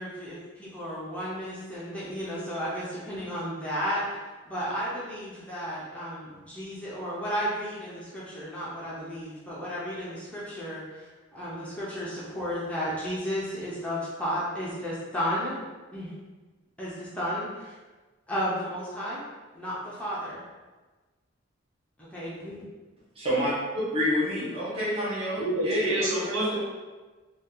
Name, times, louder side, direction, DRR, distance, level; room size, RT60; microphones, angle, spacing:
voice 1, 0.0-4.2 4.5-15.6 15.9-16.1 16.8-17.7 18.3-19.2 19.5-20.4 22.0-22.5, equal, 5° left, -9 dB, 0.6 m, -33 dB
voice 2, 23.2-23.5 23.9-26.3, equal, 30° right, -8 dB, 0.8 m, -28 dB
voice 3, 25.3-26.6, right 1 dB, 80° right, -9 dB, 1.3 m, -28 dB
2.7 x 2.3 x 3.6 m, 1.3 s
head